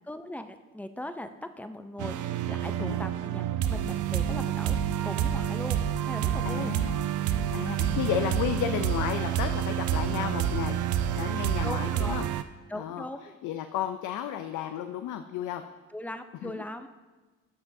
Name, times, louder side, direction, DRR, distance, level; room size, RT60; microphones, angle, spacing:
voice 1, 0.1-4.8 5.0-5.8 6.1-6.7 11.6-12.2 12.7-13.2 15.9-16.9, left 1 dB, 5° left, 9 dB, 0.4 m, -39 dB
sound 1, 2.0-12.4, right 10 dB, 80° right, 0.5 m, -28 dB
voice 2, 6.4-7.0 7.5-10.8 11.1-12.3 12.7-13.1 13.4-15.6 16.4-16.6, left 11 dB, 85° left, 8 dB, 0.5 m, -33 dB
12.5 x 5.9 x 2.6 m, 1.3 s
cardioid pair, 90°, 30 cm